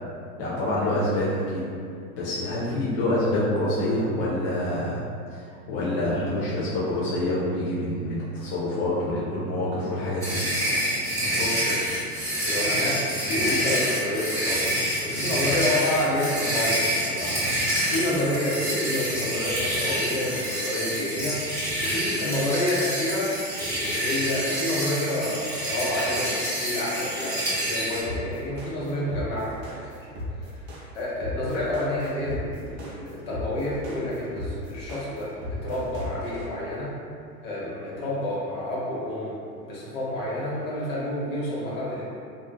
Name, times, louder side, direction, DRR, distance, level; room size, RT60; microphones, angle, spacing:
voice 1, 0.4-1.6 2.1-5.0 5.3-10.4, left 1 dB, 30° left, -8 dB, 0.5 m, -26 dB
sound 1, 10.2-28.0, equal, 5° left, 0.8 m, -27 dB
voice 2, 11.3-21.4 21.8-30.1 30.4-30.6 30.9-35.3 35.6-36.9 37.4-42.0, left 1 dB, 55° left, -7 dB, 1.0 m, -29 dB
sound 2, 28.0-36.4, left 2 dB, 25° right, 0.4 m, -35 dB
2.5 x 2.3 x 2.2 m, 2.3 s
hypercardioid pair, 100°, 48 cm